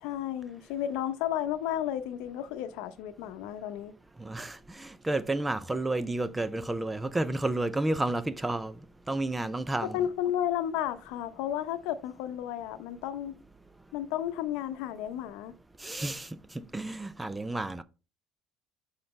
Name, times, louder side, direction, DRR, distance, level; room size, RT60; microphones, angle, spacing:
voice 1, 0.0-3.9 9.8-13.4 13.9-15.6, left 11 dB, 80° left, 0.7 m, -33 dB
voice 2, 4.2-8.8 9.1-10.0 15.8-16.3 16.5-17.8, right 2 dB, 10° right, 0.4 m, -31 dB
5.8 x 4.0 x 5.2 m
cardioid pair, 145°, 0 cm